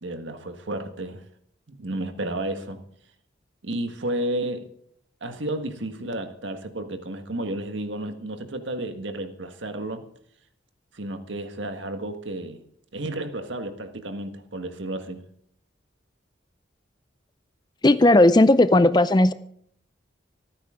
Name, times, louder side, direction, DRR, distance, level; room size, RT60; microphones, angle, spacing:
voice 1, 0.0-1.2 1.8-2.8 3.6-4.7 5.2-10.0 10.9-12.6 12.9-15.2, right 1 dB, 75° right, 7 dB, 1.6 m, -32 dB
voice 2, 17.8-19.3, left 1 dB, 20° left, 14 dB, 0.5 m, -16 dB
25.0 x 9.5 x 3.7 m, 0.67 s
head